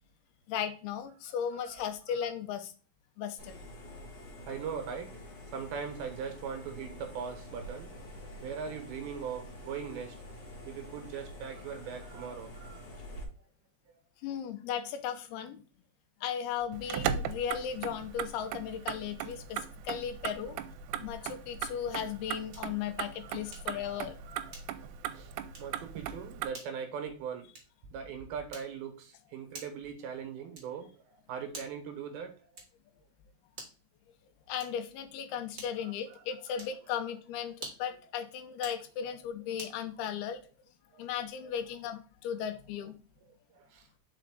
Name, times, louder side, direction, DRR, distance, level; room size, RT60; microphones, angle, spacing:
voice 1, 0.5-2.7 3.2-3.6 14.2-15.6 16.2-20.6 21.0-24.2 34.5-40.4 41.0-43.0, left 8 dB, 80° left, 2.5 m, -36 dB
voice 2, 1.2-1.8 2.2-2.3 3.9-4.1 4.4-5.2 5.5-10.2 10.7-12.8 23.2-24.5 25.0-27.5 27.9-32.3 35.8-36.7 37.0-37.1 40.9-41.0 43.5-43.9, right 6 dB, 70° right, 2.8 m, -41 dB
sound 1, 3.4-13.2, left 1 dB, 35° left, 2.7 m, -47 dB
Motor vehicle (road), 16.7-26.5, right 9 dB, 90° right, 2.8 m, -38 dB
sound 2, 22.5-22.8 23.5-23.8 24.5-24.9 25.5-25.8 26.5-26.8 27.5-27.8 28.5-28.9 29.5-29.9 30.5-30.9 31.5-31.9 32.5-32.9 33.5-33.9 34.5-34.9 35.5-35.9 36.5-36.8 37.5-38.0 38.5-38.8 39.6-39.8, right 3 dB, 40° right, 1.7 m, -48 dB
5.7 x 5.0 x 3.7 m
omnidirectional pair, 4.9 m